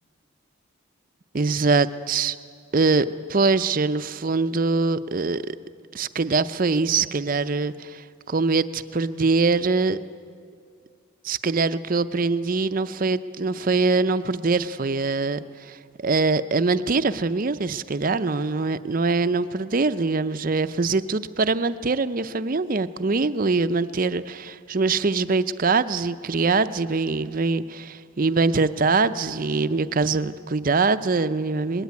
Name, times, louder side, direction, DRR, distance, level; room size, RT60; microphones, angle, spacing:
voice 1, 1.3-2.4 2.7-5.6 5.9-10.0 11.2-15.8 16.0-31.8, right 3 dB, 40° right, 13 dB, 0.5 m, -23 dB
20.0 x 18.0 x 9.4 m, 2.3 s
head